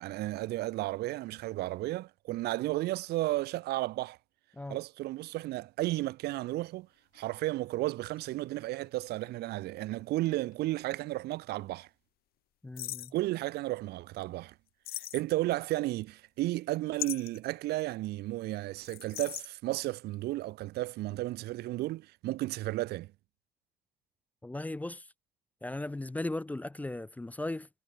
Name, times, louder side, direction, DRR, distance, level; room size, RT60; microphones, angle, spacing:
voice 1, 0.0-4.2 4.7-6.9 7.1-11.9 13.1-14.5 15.1-23.1, right 17 dB, 75° right, 0.6 m, -33 dB
sound 1, 7.1-7.2 8.2-10.9 11.1-11.2 12.8-13.2 14.8-15.6 17.0-17.5 18.8-19.5, left 15 dB, 65° left, 0.6 m, -40 dB
voice 2, 12.6-13.1 24.4-25.1 25.6-27.7, left 2 dB, 10° left, 0.4 m, -37 dB
cardioid pair, 110°, 17 cm